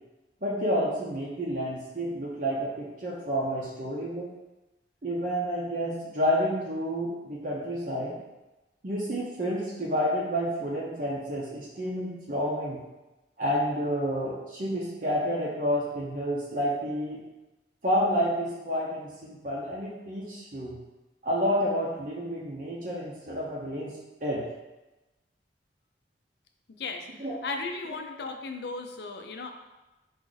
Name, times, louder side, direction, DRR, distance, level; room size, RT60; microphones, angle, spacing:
voice 1, 0.4-4.3 5.0-8.2 8.8-12.8 13.4-17.2 17.8-20.7 21.2-24.4 27.2-27.3, equal, 45° right, -4 dB, 0.7 m, -29 dB
voice 2, 27.4-29.5, left 3 dB, 60° left, 4 dB, 0.5 m, -35 dB
4.8 x 2.6 x 3.9 m, 1.0 s
head